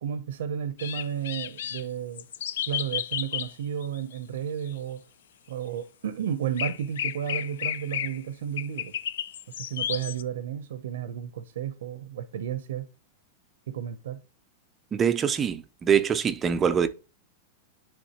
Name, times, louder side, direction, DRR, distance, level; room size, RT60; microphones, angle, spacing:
voice 1, 0.0-2.2 2.7-5.0 5.5-8.9 9.5-12.9 13.7-14.2, right 9 dB, 80° right, 0.5 m, -32 dB
sound 1, 0.8-1.8 2.2-3.5 3.8-4.1 4.7-4.8 6.6-8.2 8.6-10.2, left 10 dB, 85° left, 0.4 m, -32 dB
voice 2, 14.9-16.9, right 7 dB, 15° right, 0.3 m, -24 dB
9.7 x 3.4 x 2.8 m
supercardioid pair, 165°, 0 cm